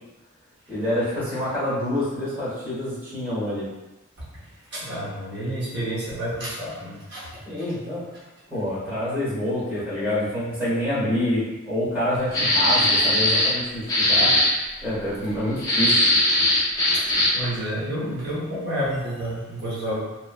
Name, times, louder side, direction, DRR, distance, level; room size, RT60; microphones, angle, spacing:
voice 1, 0.7-3.6 7.4-8.0 8.5-14.3 14.8-16.1, left 1 dB, 10° right, -12 dB, 1.2 m, -27 dB
voice 2, 4.7-7.4 16.9-20.0, equal, 55° right, -9 dB, 0.8 m, -30 dB
sound 1, 12.3-13.6 13.9-14.5 15.6-17.5, left 1 dB, 15° left, 0.4 m, -19 dB
2.9 x 2.1 x 2.4 m, 1.1 s
head